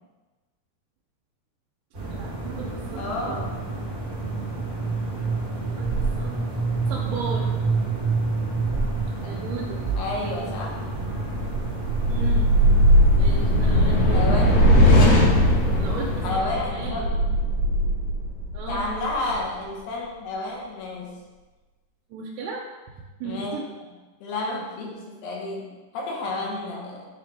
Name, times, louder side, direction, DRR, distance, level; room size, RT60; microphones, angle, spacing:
sound 1, 1.9-16.3, right 3 dB, 60° right, 1.0 m, -29 dB
voice 1, 2.2-3.4 5.7-6.4 6.9-7.5 7.8-8.2 9.2-9.8 10.2-10.5 11.2-11.4 12.1-12.5 12.8-14.3 15.8-17.1 18.5-18.9 22.1-22.7 23.2-23.7 26.2-26.6, right 4 dB, 80° right, -3 dB, 2.7 m, -36 dB
voice 2, 3.0-3.6 9.2-9.3 10.0-10.8 14.0-14.6 16.2-17.4 18.7-21.2 23.2-23.6 24.2-27.1, left 2 dB, 75° left, -1 dB, 3.2 m, -31 dB
sound 2, 10.9-19.4, equal, 60° left, 2.1 m, -19 dB
10.5 x 3.9 x 3.4 m, 1.2 s
omnidirectional pair, 4.8 m